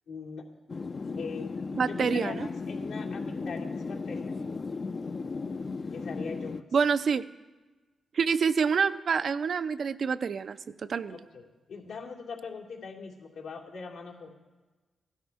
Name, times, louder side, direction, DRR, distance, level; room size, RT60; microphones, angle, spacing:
voice 1, 0.1-0.4 1.1-4.5 5.9-6.6 11.1-14.3, left 5 dB, 90° left, -3 dB, 2.6 m, -41 dB
sound 1, 0.7-6.6, left 4 dB, 45° left, 0.5 m, -35 dB
voice 2, 1.7-2.5 6.7-7.3 8.1-10.6 10.9-11.2, right 6 dB, 65° right, 12 dB, 0.5 m, -27 dB
16.0 x 12.0 x 4.7 m, 1.2 s
cardioid pair, 55°, 0 cm